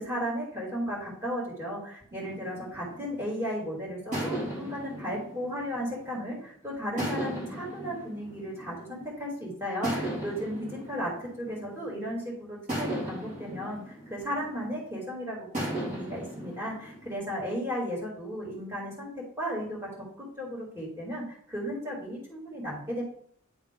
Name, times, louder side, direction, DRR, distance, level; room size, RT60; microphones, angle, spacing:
voice 1, 0.0-19.1 19.4-19.9 20.2-23.0, equal, 10° right, -5 dB, 2.5 m, -35 dB
sound 1, 2.2-3.5 4.1-6.4 7.0-9.1 9.8-12.1 12.7-14.9 15.5-17.1, right 1 dB, 35° right, 2.2 m, -37 dB
10.5 x 3.5 x 3.7 m, 0.63 s
head